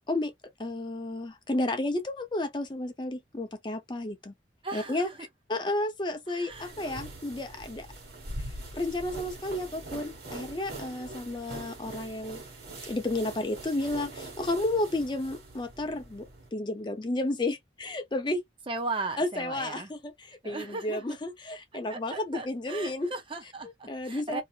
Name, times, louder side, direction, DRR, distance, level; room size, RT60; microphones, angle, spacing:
voice 1, 0.6-4.3 4.7-5.1 5.5-7.9 8.7-12.4 12.9-18.4 19.2-23.1 23.9-24.4, left 2 dB, 25° left, 0.5 m, -32 dB
voice 2, 4.6-5.2 6.3-6.7 18.7-19.9 20.4-21.2 21.9-24.4, right 3 dB, 30° right, 0.6 m, -37 dB
sound 1, 6.5-16.5, right 2 dB, 55° right, 1.4 m, -43 dB
2.8 x 2.4 x 2.7 m
head